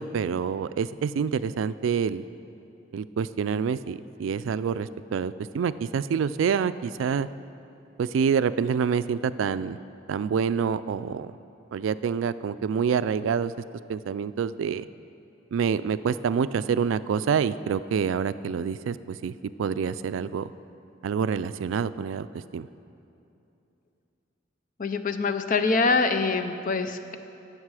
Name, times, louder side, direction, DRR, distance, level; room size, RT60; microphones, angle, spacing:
voice 1, 0.0-2.2 2.9-7.3 8.0-9.8 10.1-11.4 11.7-13.5 13.9-14.9 15.5-20.5 21.0-22.7, right 6 dB, 80° right, 15 dB, 0.3 m, -27 dB
voice 2, 24.8-27.2, left 4 dB, 45° left, 9 dB, 0.6 m, -24 dB
17.0 x 6.6 x 4.8 m, 2.8 s
head